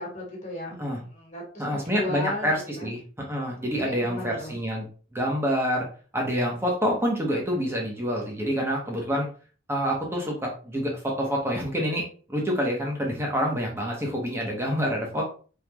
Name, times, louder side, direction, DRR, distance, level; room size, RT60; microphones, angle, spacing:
voice 1, 0.0-2.9 3.8-4.6 15.1-15.2, left 1 dB, 35° left, 0 dB, 1.7 m, -36 dB
voice 2, 1.6-3.0 3.3-4.9 5.1-5.9 6.1-9.3 9.7-15.2, equal, 10° right, -1 dB, 1.2 m, -27 dB
4.4 x 3.8 x 3.0 m, 0.39 s
head